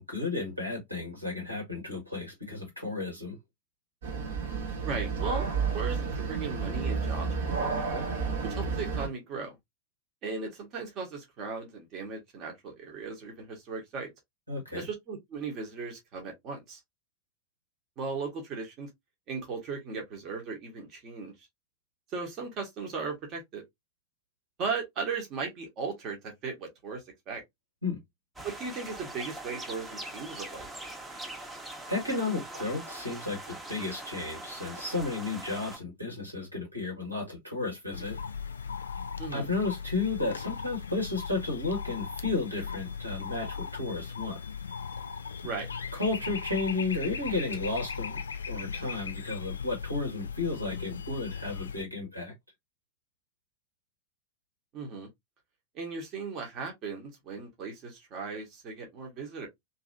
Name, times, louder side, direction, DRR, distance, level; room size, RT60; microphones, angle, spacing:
voice 1, 0.0-3.4 14.5-14.8 27.8-28.0 31.9-38.2 39.3-44.4 45.9-48.2 48.5-52.3, left 3 dB, 85° right, 1.6 m, -33 dB
sound 1, 4.0-9.1, right 5 dB, 60° right, 1.0 m, -31 dB
voice 2, 4.8-8.0 8.4-9.5 10.2-14.1 14.7-16.8 18.0-18.9 19.3-21.3 22.1-23.6 24.6-27.4 28.4-30.7 39.2-39.5 45.4-45.7 54.7-55.1 55.7-59.5, right 4 dB, 35° right, 1.1 m, -37 dB
sound 2, 28.4-35.8, right 2 dB, 10° right, 0.8 m, -42 dB
sound 3, 37.9-51.8, left 6 dB, 70° left, 0.4 m, -38 dB
2.9 x 2.7 x 2.5 m
figure-of-eight pair, 90°, 0 cm